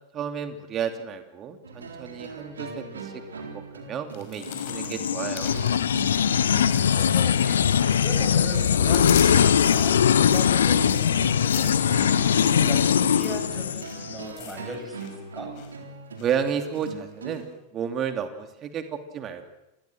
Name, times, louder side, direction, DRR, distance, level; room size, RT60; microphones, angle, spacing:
voice 1, 0.1-5.5 16.2-17.4 17.7-19.4, right 7 dB, 30° right, 7 dB, 3.0 m, -32 dB
sound 1, 1.6-17.4, right 3 dB, 70° right, 3.8 m, -40 dB
sound 2, 4.1-7.9 8.2-15.1 15.4-15.7 16.2-16.8 17.3-17.4, left 8 dB, 50° left, 5.5 m, -41 dB
sound 3, 4.5-14.2, left 8 dB, 65° left, 1.1 m, -21 dB
voice 2, 6.1-7.6 7.9-15.5, equal, 10° right, 3 dB, 7.7 m, -38 dB
28.5 x 22.0 x 6.4 m, 0.92 s
figure-of-eight pair, 90°, 0 cm